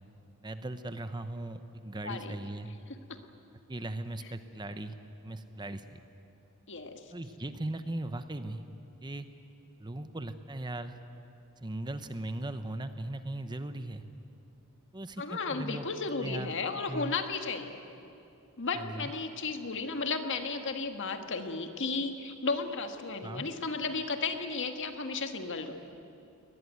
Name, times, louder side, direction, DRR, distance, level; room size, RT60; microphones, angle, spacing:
voice 1, 0.4-2.7 3.7-4.9 5.2-6.0 7.1-8.6 9.0-9.3 9.8-11.0 11.6-14.0 14.9-15.9 16.2-17.2 18.8-19.1 23.2-23.5, right 1 dB, 20° right, 10 dB, 0.8 m, -38 dB
voice 2, 2.0-2.4 3.1-3.2 6.7-7.0 15.2-17.8 18.6-25.7, left 4 dB, 60° left, 6 dB, 1.7 m, -34 dB
23.0 x 19.5 x 9.4 m, 2.7 s
head